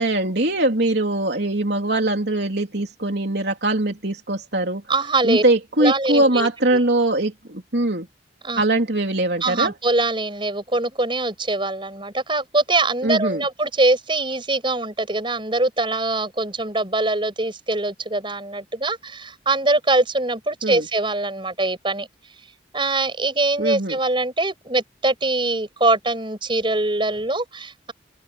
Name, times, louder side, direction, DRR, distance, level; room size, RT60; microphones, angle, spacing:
voice 1, 0.0-4.8 5.2-8.1 8.6-9.7 13.0-13.4 20.6-20.8 23.6-24.0, right 2 dB, 60° right, 3.6 m, -22 dB
voice 2, 4.9-5.4 5.8-6.5 8.4-8.6 9.4-22.1 22.7-27.9, right 2 dB, 25° right, 5.9 m, -23 dB
head